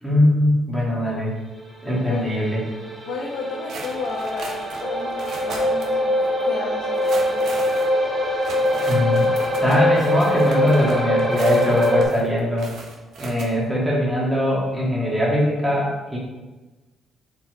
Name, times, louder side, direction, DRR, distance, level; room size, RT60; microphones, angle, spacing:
voice 1, 0.0-1.3 1.8-2.6 8.7-9.3 9.6-12.7 13.2-16.2, left 1 dB, ahead, -6 dB, 1.9 m, -21 dB
sound 1, 1.7-12.0, left 1 dB, 30° right, 1.6 m, -23 dB
voice 2, 3.0-7.8 8.6-8.7, left 4 dB, 85° left, -3 dB, 0.8 m, -33 dB
sound 2, 3.7-6.0 6.2-6.3 6.9-13.4, right 3 dB, 65° right, 1.0 m, -38 dB
4.6 x 4.2 x 4.9 m, 1.1 s
cardioid pair, 90°, 0 cm